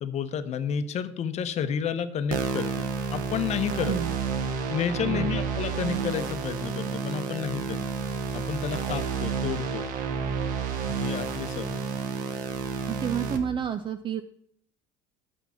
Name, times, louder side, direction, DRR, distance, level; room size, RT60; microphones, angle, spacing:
voice 1, 0.0-3.9 4.7-7.9 8.3-9.9 10.9-11.8, left 7 dB, 45° left, 12 dB, 0.8 m, -31 dB
sound 1, 2.3-13.4, right 6 dB, 60° right, 1.1 m, -30 dB
voice 2, 3.8-4.2 5.0-5.4 12.9-14.2, right 8 dB, 35° right, 10 dB, 0.5 m, -30 dB
6.1 x 5.9 x 7.1 m, 0.67 s
supercardioid pair, 80°, 15 cm